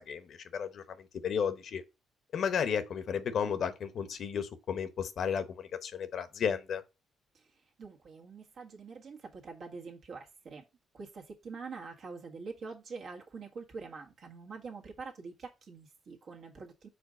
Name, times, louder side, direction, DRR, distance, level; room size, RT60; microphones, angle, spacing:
voice 1, 0.0-1.8 2.3-6.8, left 7 dB, 60° left, 0.9 m, -33 dB
voice 2, 7.8-10.6 10.9-16.9, right 4 dB, 60° right, 1.6 m, -45 dB
5.0 x 4.0 x 5.0 m
cardioid pair, 90°, 0 cm